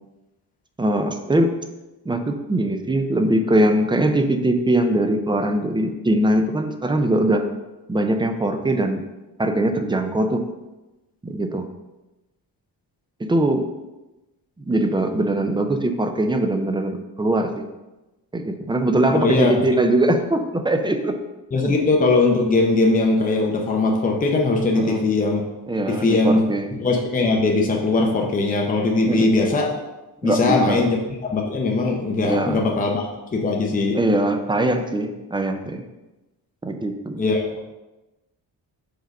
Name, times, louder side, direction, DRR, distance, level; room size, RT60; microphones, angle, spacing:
voice 1, 0.8-1.5 2.1-7.4 7.9-9.0 9.4-10.5 11.2-11.7 13.2-13.7 14.7-17.7 18.3-21.2 21.6-21.7 24.8-25.1 25.7-26.7 29.1-29.3 30.2-30.8 32.2-32.7 33.9-35.8 36.6-37.2, right 1 dB, 10° right, 6 dB, 0.4 m, -21 dB
voice 2, 19.1-19.6 21.5-25.5 25.9-26.5 26.8-29.7 30.2-31.0 31.2-34.0 37.2-37.6, left 3 dB, 20° left, 0 dB, 0.7 m, -20 dB
5.1 x 3.8 x 5.4 m, 1.0 s
wide cardioid pair, 150°, 41 cm